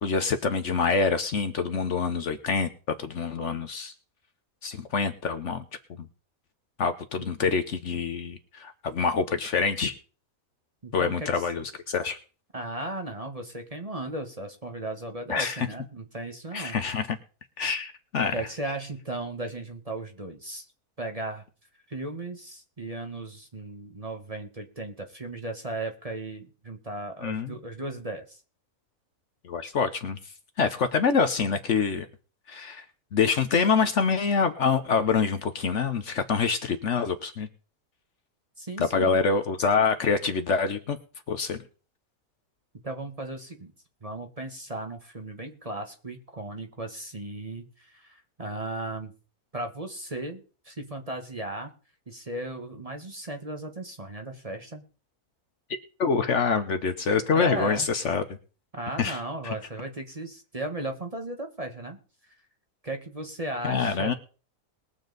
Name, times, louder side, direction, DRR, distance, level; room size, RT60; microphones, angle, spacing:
voice 1, 0.0-2.7 3.0-3.9 4.6-5.6 6.8-9.9 10.9-12.2 15.3-15.7 16.5-17.2 17.6-18.3 27.2-27.6 29.4-30.2 30.6-32.1 32.5-32.8 33.1-37.5 38.8-41.0 41.3-41.6 56.0-58.2 59.0-59.2 59.4-59.5 63.6-64.1, left 5 dB, 55° left, 8 dB, 1.1 m, -26 dB
voice 2, 10.8-11.5 12.5-16.8 18.3-20.7 21.0-21.4 21.9-28.4 38.6-39.2 42.8-43.7 44.0-49.1 49.5-51.7 52.1-54.8 57.3-57.9 58.7-62.0 62.8-64.1, right 2 dB, 25° right, 5 dB, 1.2 m, -36 dB
21.0 x 7.2 x 3.9 m, 0.38 s
omnidirectional pair, 1.6 m